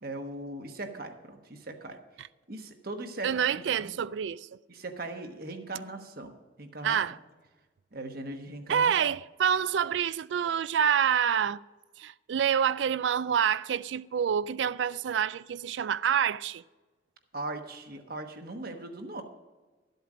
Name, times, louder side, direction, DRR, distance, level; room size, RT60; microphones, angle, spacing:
voice 1, 0.0-2.0 2.5-3.9 4.7-6.3 6.6-7.0 7.9-8.9 17.3-19.2, right 2 dB, 55° right, 1.2 m, -39 dB
voice 2, 3.2-4.5 6.8-7.2 8.7-11.6 12.0-16.6, right 8 dB, 75° right, 0.3 m, -27 dB
13.0 x 8.0 x 5.0 m
head